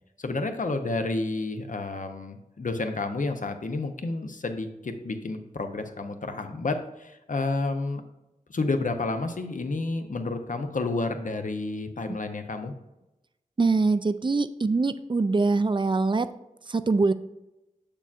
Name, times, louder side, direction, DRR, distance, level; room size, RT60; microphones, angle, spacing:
voice 1, 0.2-8.0 8.5-12.7, left 3 dB, 65° left, 6 dB, 0.7 m, -30 dB
voice 2, 13.6-16.3 16.7-17.1, right 3 dB, 35° right, 13 dB, 0.4 m, -23 dB
7.2 x 6.7 x 2.5 m, 0.94 s
wide cardioid pair, 60°, 14 cm